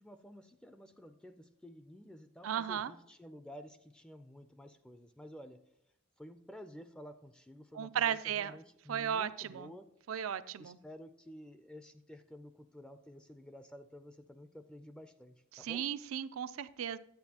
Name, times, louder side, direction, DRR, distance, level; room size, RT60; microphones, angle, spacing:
voice 1, 0.0-5.6 6.2-9.9 10.6-15.9, equal, 5° left, 9 dB, 0.3 m, -52 dB
voice 2, 2.4-2.9 7.7-8.6 8.9-9.7 10.1-10.8 15.5-17.0, right 8 dB, 85° right, 14 dB, 0.4 m, -35 dB
10.5 x 8.7 x 2.8 m, 0.81 s
head